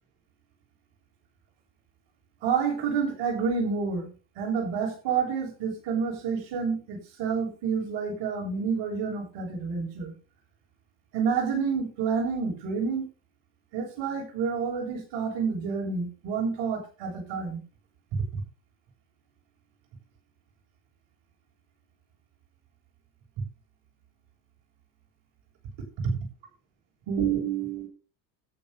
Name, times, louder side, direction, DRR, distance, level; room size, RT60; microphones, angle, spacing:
voice 1, 2.4-4.1 4.4-10.1 11.1-13.1 13.7-17.6 18.3-18.4 27.1-27.9, right 6 dB, 70° right, -1 dB, 7.5 m, -29 dB
13.5 x 10.0 x 3.9 m, 0.34 s
supercardioid pair, 90°, 46 cm